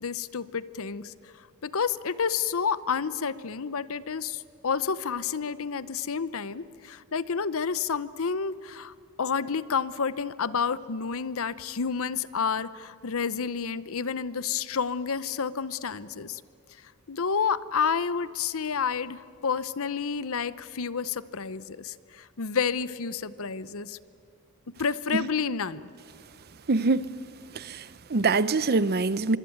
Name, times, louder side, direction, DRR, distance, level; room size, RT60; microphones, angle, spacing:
voice 1, 0.0-16.4 17.1-24.0 24.8-25.8, left 6 dB, 65° left, 0.7 m, -30 dB
voice 2, 26.7-27.1 27.5-29.4, right 3 dB, 45° right, 0.7 m, -24 dB
25.0 x 24.5 x 9.2 m
head